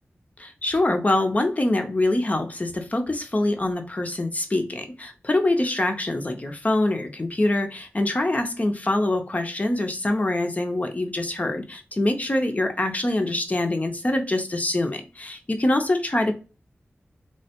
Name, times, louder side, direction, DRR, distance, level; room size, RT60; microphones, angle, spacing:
voice 1, 0.4-16.4, left 1 dB, 35° left, 0.6 m, -24 dB
3.1 x 2.1 x 2.8 m
wide cardioid pair, 70°, 4 cm